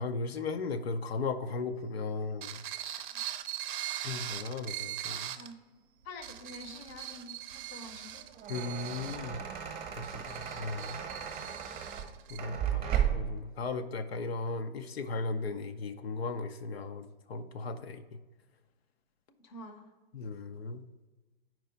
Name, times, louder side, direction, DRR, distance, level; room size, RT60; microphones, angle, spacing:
voice 1, 0.0-2.5 4.0-5.4 8.5-9.4 10.0-10.9 12.3-18.0 20.1-20.8, left 3 dB, 80° left, 8 dB, 0.6 m, -36 dB
sound 1, 2.4-5.5 6.0-12.4, right 12 dB, 55° right, 0.5 m, -41 dB
voice 2, 6.0-8.3 19.3-19.9, left 2 dB, 30° left, 7 dB, 0.7 m, -47 dB
sound 2, 8.2-13.4, right 9 dB, 15° right, 0.8 m, -35 dB
4.6 x 4.6 x 5.1 m, 1.2 s
hypercardioid pair, 140°, 30 cm